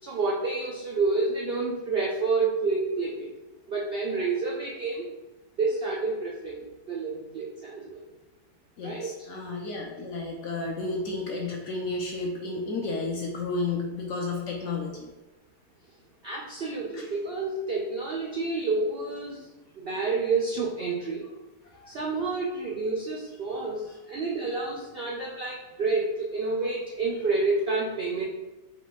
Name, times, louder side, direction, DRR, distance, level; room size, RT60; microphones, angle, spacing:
voice 1, 0.0-3.3 3.7-5.1 5.6-8.0 8.8-9.3 16.2-19.5 19.8-21.2 21.9-28.2, right 3 dB, 85° right, -3 dB, 0.5 m, -29 dB
voice 2, 8.8-15.1 16.9-17.0 21.7-21.9, left 3 dB, 65° left, -1 dB, 0.7 m, -32 dB
4.3 x 2.4 x 3.9 m, 1.1 s
omnidirectional pair, 1.8 m